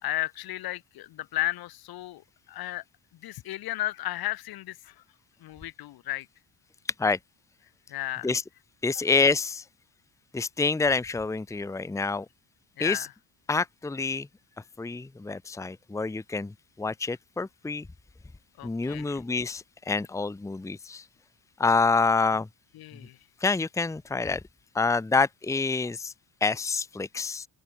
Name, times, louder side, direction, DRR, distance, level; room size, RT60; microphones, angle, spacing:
voice 1, 0.0-2.2 2.5-2.8 3.2-5.0 5.4-6.3 7.9-8.3 12.8-13.1 18.6-19.2 22.7-23.2, left 15 dB, 80° left, 4.2 m, -34 dB
voice 2, 8.8-9.6 10.3-12.3 12.8-13.0 13.5-14.3 14.8-17.9 18.6-21.0 21.6-22.5 23.4-24.4 24.7-26.1 26.4-27.5, left 4 dB, 10° left, 0.8 m, -27 dB
open air
cardioid pair, 125°, 36 cm